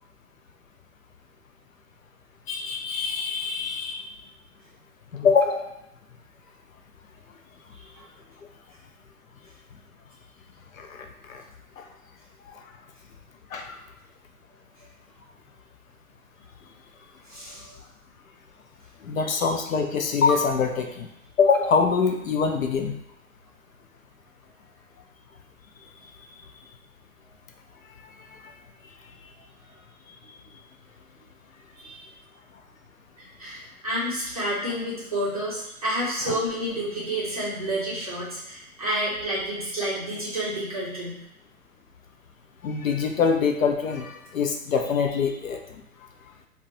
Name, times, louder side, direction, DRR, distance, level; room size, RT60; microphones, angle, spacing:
voice 1, 2.5-4.0 5.1-5.7 10.8-11.4 11.8-11.9 13.5-13.8 19.0-21.1 21.4-23.0 28.4-28.5 42.6-45.6, left 5 dB, 65° left, 4 dB, 0.5 m, -24 dB
voice 2, 17.3-17.8 19.2-19.3 31.8-32.1 33.2-41.2, right 1 dB, 25° right, -8 dB, 0.6 m, -30 dB
2.5 x 2.2 x 3.7 m, 0.79 s
hypercardioid pair, 170°, 45 cm